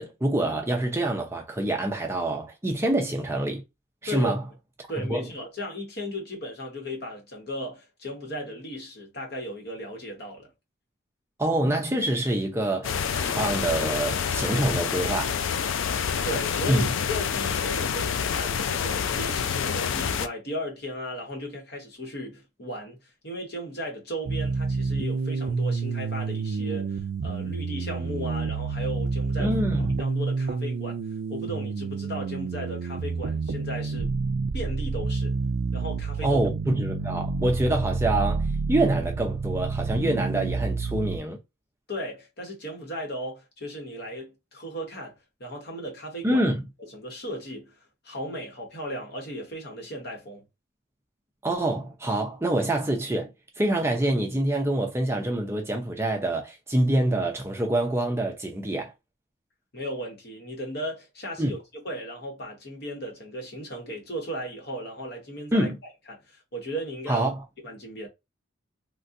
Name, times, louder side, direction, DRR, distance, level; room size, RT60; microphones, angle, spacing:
voice 1, 0.0-3.6 4.0-4.4 5.1-5.2 11.4-15.4 16.7-16.9 29.4-29.9 36.2-41.4 46.2-46.6 51.4-58.9 61.4-61.5 65.5-65.7 67.1-67.4, right 1 dB, 10° right, 0.5 m, -26 dB
voice 2, 4.9-10.5 16.2-23.0 23.2-31.0 31.3-34.1 34.5-35.4 35.7-36.4 41.9-46.4 46.8-50.4 59.7-65.7 66.1-67.3 67.6-68.1, equal, 50° left, 1.0 m, -36 dB
sound 1, 12.8-20.3, left 7 dB, 75° left, 0.4 m, -27 dB
sound 2, 24.3-41.2, right 4 dB, 75° right, 0.4 m, -29 dB
3.7 x 2.2 x 2.6 m
head